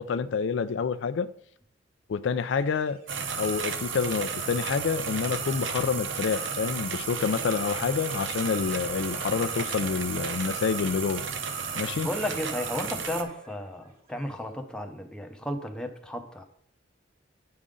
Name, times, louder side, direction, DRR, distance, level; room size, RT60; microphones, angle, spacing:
voice 1, 0.0-1.3 2.1-3.0 3.4-11.3 11.8-12.1, left 5 dB, 75° left, 0.4 m, -28 dB
sound 1, 2.4-15.1, right 2 dB, 55° right, 2.2 m, -50 dB
sound 2, 3.1-13.2, right 6 dB, 85° right, 0.8 m, -33 dB
voice 2, 11.7-16.4, left 1 dB, 5° left, 0.7 m, -34 dB
9.6 x 5.2 x 3.7 m
head